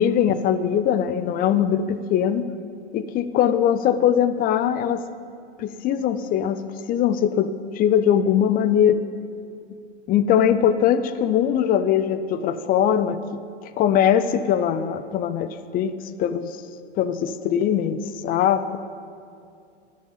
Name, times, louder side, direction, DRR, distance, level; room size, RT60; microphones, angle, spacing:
voice 1, 0.0-2.5 2.9-5.0 5.6-6.6 6.9-9.0 10.1-15.9 16.2-16.6 17.0-18.8, left 9 dB, 25° left, 13 dB, 0.5 m, -21 dB
13.0 x 11.5 x 3.9 m, 2.4 s
hypercardioid pair, 110°, 36 cm